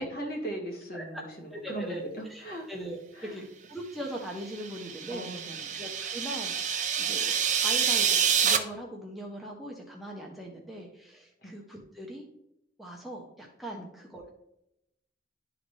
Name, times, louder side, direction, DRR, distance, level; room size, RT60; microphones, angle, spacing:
voice 1, 0.0-2.7 3.1-3.4 5.1-5.7 11.4-11.5 13.7-13.9, right 1 dB, 50° left, 1 dB, 1.8 m, -38 dB
voice 2, 1.5-2.0 2.3-5.3 5.7-12.2 12.8-14.3, right 1 dB, ahead, -2 dB, 0.8 m, -40 dB
sound 1, 4.4-8.6, right 7 dB, 40° right, 0.6 m, -27 dB
11.0 x 3.8 x 3.2 m, 0.80 s
head